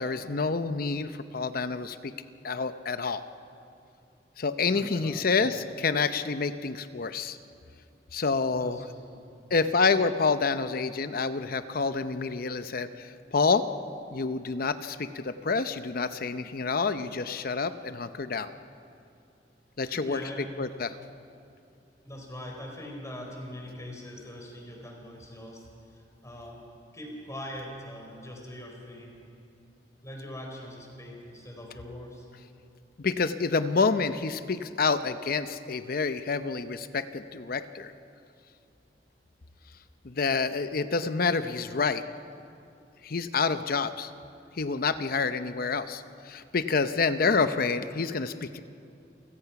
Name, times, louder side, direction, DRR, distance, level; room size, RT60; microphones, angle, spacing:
voice 1, 0.0-2.1 2.4-3.2 4.4-7.4 8.1-8.8 9.5-13.6 14.1-18.5 19.8-20.2 20.6-21.0 33.0-37.9 40.0-42.0 43.0-44.1 44.6-48.6, left 4 dB, 55° left, 11 dB, 0.7 m, -28 dB
voice 2, 4.7-5.5 8.5-9.3 19.8-20.5 22.0-25.7 25.9-26.6 26.9-29.2 30.0-32.3, left 1 dB, 20° left, 0 dB, 4.3 m, -42 dB
29.0 x 16.5 x 5.9 m, 2.6 s
head